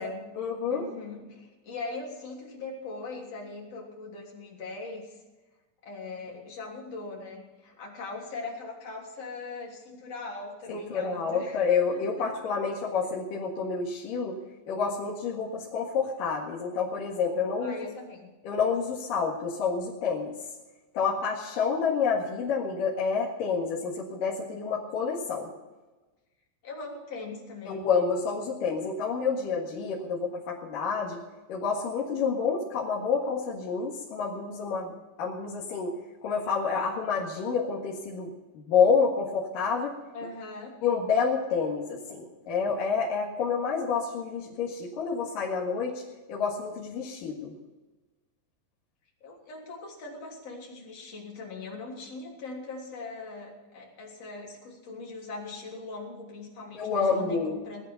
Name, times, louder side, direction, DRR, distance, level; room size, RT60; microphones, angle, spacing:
voice 1, 0.0-0.9 10.7-14.4 14.7-17.7 18.4-20.3 20.9-25.5 27.7-31.2 31.5-34.9 35.2-35.9 36.2-38.3 38.7-40.0 40.8-46.0 46.3-47.5 56.7-57.6, left 5 dB, 60° left, -5 dB, 3.3 m, -28 dB
voice 2, 0.7-5.2 5.8-11.6 11.9-12.3 17.6-18.3 26.6-27.9 40.1-40.8 49.2-57.8, left 3 dB, 40° left, -2 dB, 4.1 m, -40 dB
19.0 x 11.0 x 5.6 m, 1.2 s
omnidirectional pair, 4.8 m